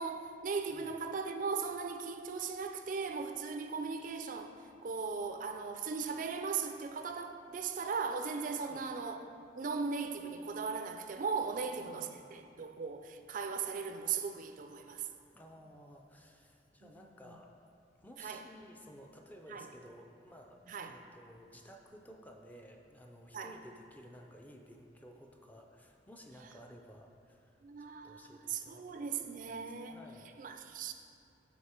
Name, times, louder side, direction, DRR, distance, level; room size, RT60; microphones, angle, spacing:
voice 1, 0.0-4.5 4.8-9.2 9.6-15.1 16.8-16.9 18.2-18.4 19.5-19.7 20.7-20.9 23.3-23.5 27.6-30.0 30.4-30.9, right 5 dB, 45° right, 6 dB, 0.4 m, -38 dB
voice 2, 11.5-12.3 15.3-17.5 18.0-30.3, equal, 10° left, 2 dB, 0.5 m, -55 dB
8.1 x 4.8 x 4.4 m, 2.4 s
head